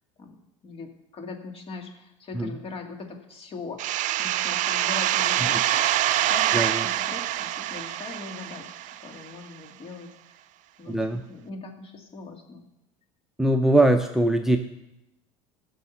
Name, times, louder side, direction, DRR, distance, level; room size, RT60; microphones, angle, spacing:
voice 1, 0.2-3.8 4.2-10.5 10.8-12.6, left 4 dB, 35° left, 3 dB, 2.4 m, -41 dB
sound 1, 3.8-9.3, right 13 dB, 55° right, 0.6 m, -25 dB
voice 2, 10.9-11.2 13.4-14.6, right 1 dB, 5° right, 6 dB, 0.8 m, -21 dB
15.0 x 6.5 x 5.8 m, 0.89 s
hypercardioid pair, 85°, 16 cm